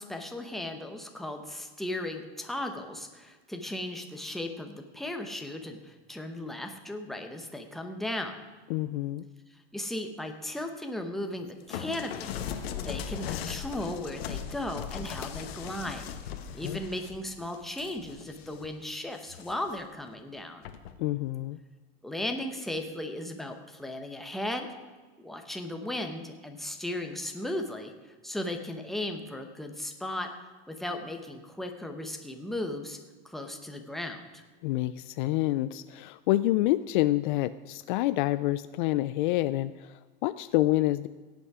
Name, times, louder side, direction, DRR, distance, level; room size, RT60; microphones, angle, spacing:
voice 1, 0.0-8.3 9.5-16.1 16.5-20.7 22.0-24.7 25.2-30.3 30.7-33.0 33.2-34.4, left 1 dB, ahead, 4 dB, 0.9 m, -36 dB
voice 2, 8.7-9.3 16.6-16.8 21.0-21.6 34.6-41.1, left 16 dB, 55° left, 15 dB, 0.4 m, -27 dB
sound 1, 11.7-18.7 19.1-19.8 20.6-21.0, left 8 dB, 80° left, 1.2 m, -38 dB
17.0 x 8.3 x 4.8 m, 1.4 s
supercardioid pair, 150°, 30 cm